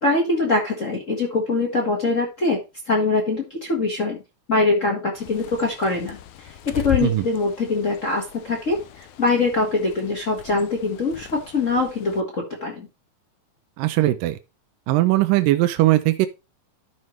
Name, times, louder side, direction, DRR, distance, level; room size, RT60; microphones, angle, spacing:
voice 1, 0.0-2.6 2.9-4.2 4.5-6.2 6.4-12.9, left 3 dB, 45° left, 1.0 m, -23 dB
Bird, 5.1-12.2, left 9 dB, 75° left, 1.9 m, -37 dB
voice 2, 13.8-14.4 14.9-16.3, right 16 dB, 80° right, 2.3 m, -19 dB
13.0 x 5.3 x 3.2 m
omnidirectional pair, 4.0 m